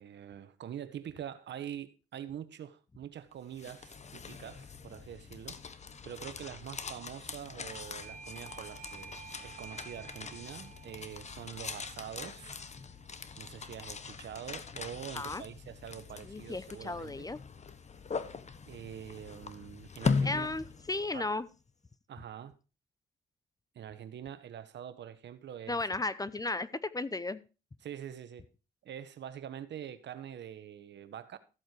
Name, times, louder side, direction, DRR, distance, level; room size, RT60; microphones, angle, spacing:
voice 1, 0.0-5.6 6.0-12.6 13.4-17.3 18.7-20.5 21.1-21.3 22.1-22.5 23.7-25.8 27.8-28.4 28.8-31.4, right 9 dB, 60° right, 1.4 m, -45 dB
sound 1, 3.3-21.3, left 5 dB, 35° left, 1.3 m, -40 dB
Doorbell, 7.7-14.2, right 6 dB, 45° right, 1.4 m, -52 dB
voice 2, 16.2-17.4 20.2-21.5 25.7-27.4, left 2 dB, 20° left, 0.8 m, -35 dB
14.0 x 8.0 x 4.6 m
cardioid pair, 90°, 20 cm